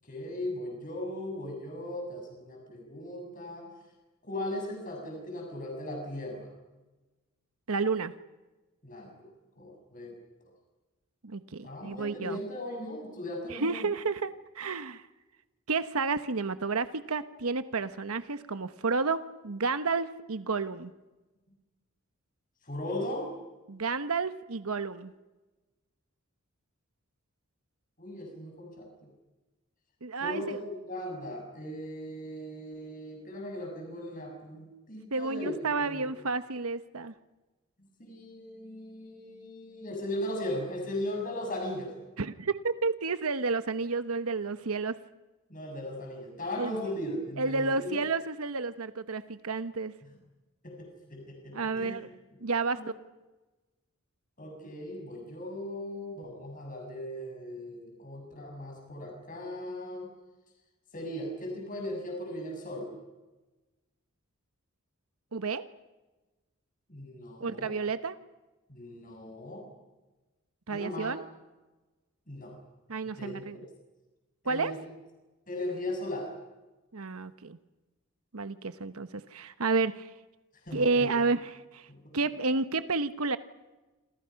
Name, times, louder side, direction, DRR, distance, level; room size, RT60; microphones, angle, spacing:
voice 1, 0.0-3.7 4.2-6.5 8.8-9.3 9.6-10.1 10.4-10.5 11.6-13.9 22.6-23.3 28.0-29.1 30.2-35.5 35.9-36.1 38.0-41.9 45.5-48.0 50.0-50.1 50.6-52.1 52.6-52.9 54.4-60.1 60.9-62.9 66.9-67.8 68.7-69.7 70.7-71.2 72.3-72.6 73.2-73.4 74.4-74.8 75.5-76.3 80.6-81.1 81.9-82.1, left 1 dB, 40° left, 1 dB, 6.6 m, -38 dB
voice 2, 7.7-8.1 11.2-12.4 13.5-15.0 15.7-20.9 23.7-25.1 30.0-30.6 35.1-37.1 42.2-45.0 46.6-46.7 47.4-49.9 51.5-52.1 52.4-52.8 65.3-65.6 67.4-68.2 70.7-71.2 72.9-73.6 74.4-74.7 76.9-77.6 78.3-80.1 80.7-81.9 82.1-83.4, right 4 dB, 85° right, 11 dB, 1.1 m, -31 dB
28.0 x 27.5 x 5.9 m, 1.1 s
head